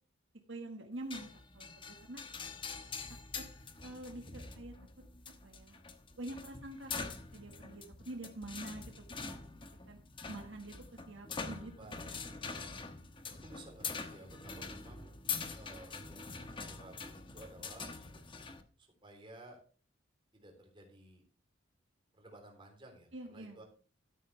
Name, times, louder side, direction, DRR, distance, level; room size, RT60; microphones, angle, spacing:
voice 1, 0.5-1.3 1.5-2.2 3.4-3.5 3.8-4.7 5.2-5.8 6.2-7.1 7.3-9.4 9.9-10.0 10.3-11.7 12.0-12.2 23.1-23.6, right 2 dB, 70° right, 3 dB, 1.6 m, -46 dB
sound 1, 1.1-18.6, left 5 dB, 25° left, 1.1 m, -44 dB
voice 2, 11.8-12.4 13.4-15.1 15.5-17.9 18.8-19.6 20.3-21.2 22.1-23.6, right 2 dB, 25° right, 2 dB, 3.4 m, -55 dB
13.0 x 9.2 x 3.3 m, 0.38 s
head